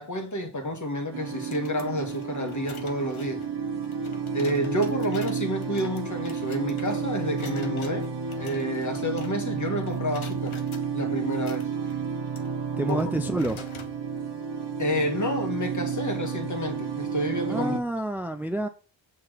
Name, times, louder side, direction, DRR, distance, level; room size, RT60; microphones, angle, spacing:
voice 1, 0.0-3.4 4.3-8.1 8.4-10.6 10.9-11.7 12.9-13.0 14.8-17.8, equal, 40° left, 1.9 m, -29 dB
sound 1, 1.1-17.8, right 6 dB, 60° right, 1.1 m, -31 dB
sound 2, 1.3-9.6 9.9-10.9 11.3-14.0, left 5 dB, 85° left, 1.4 m, -47 dB
voice 2, 12.8-13.6 17.5-18.7, right 1 dB, 5° right, 0.6 m, -28 dB
8.3 x 4.0 x 6.8 m
wide cardioid pair, 105°, 47 cm